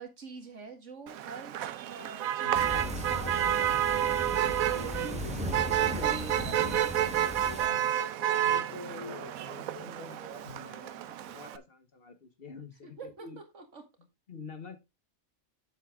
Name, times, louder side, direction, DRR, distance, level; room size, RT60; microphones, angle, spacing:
voice 1, 0.0-1.6 1.9-4.2 4.7-5.3 5.8-7.2 12.8-13.3 13.5-13.8, right 4 dB, 60° right, 5 dB, 2.2 m, -45 dB
Motor vehicle (road), 1.1-11.6, right 11 dB, 75° right, 1.1 m, -30 dB
sound 1, 2.2-10.7, left 5 dB, 75° left, 3.1 m, -48 dB
sound 2, 2.5-7.7, equal, 5° right, 1.5 m, -37 dB
voice 2, 6.0-6.4 8.4-13.4 14.3-14.8, left 4 dB, 45° left, 9 dB, 1.4 m, -48 dB
8.0 x 7.5 x 3.7 m, 0.23 s
omnidirectional pair, 1.5 m